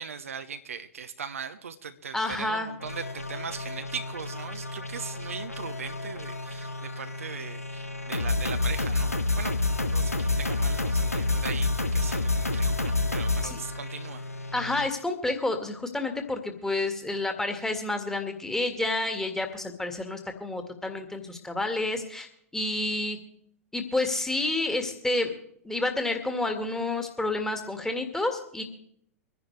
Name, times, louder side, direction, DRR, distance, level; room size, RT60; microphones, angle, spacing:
voice 1, 0.0-9.5 9.8-14.2, right 6 dB, 70° right, 10 dB, 0.9 m, -39 dB
voice 2, 2.1-2.7 13.4-13.6 14.5-22.3 22.5-23.2 23.7-25.3 25.6-28.6, left 2 dB, 5° left, 5 dB, 1.9 m, -29 dB
sound 1, 2.8-14.9, left 2 dB, 90° left, 1.0 m, -29 dB
25.0 x 10.5 x 3.3 m, 0.69 s
figure-of-eight pair, 95°, 8 cm